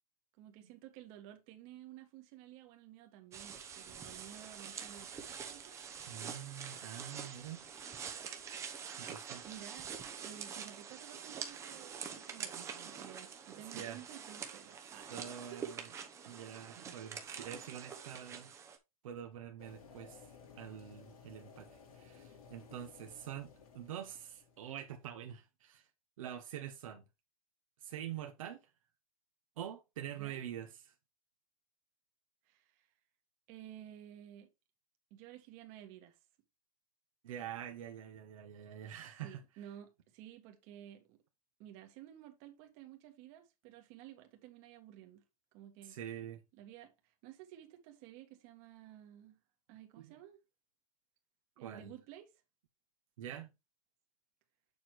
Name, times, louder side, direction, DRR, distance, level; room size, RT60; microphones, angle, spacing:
voice 1, 0.4-5.8 9.4-9.9 10.2-15.1 15.5-15.6 30.2-30.4 32.5-32.8 33.5-34.5 35.1-36.2 39.2-41.2 41.6-45.2 45.5-46.0 46.6-46.9 47.2-49.4 49.7-50.4 51.6-52.3, right 12 dB, 40° right, 1.7 m, -53 dB
sound 1, 3.3-18.8, right 7 dB, 15° right, 0.8 m, -46 dB
voice 2, 6.1-7.7 9.0-9.4 12.3-12.9 13.7-14.0 15.1-15.9 16.2-18.5 19.0-20.3 20.6-25.9 26.2-27.0 27.8-28.6 29.6-30.9 37.2-39.4 45.8-46.4 50.0-50.2 51.6-51.9 53.2-53.5, right 10 dB, 65° right, 1.3 m, -46 dB
sound 2, 19.6-25.0, left 6 dB, 85° left, 3.5 m, -57 dB
7.0 x 6.1 x 3.2 m
supercardioid pair, 150°, 18 cm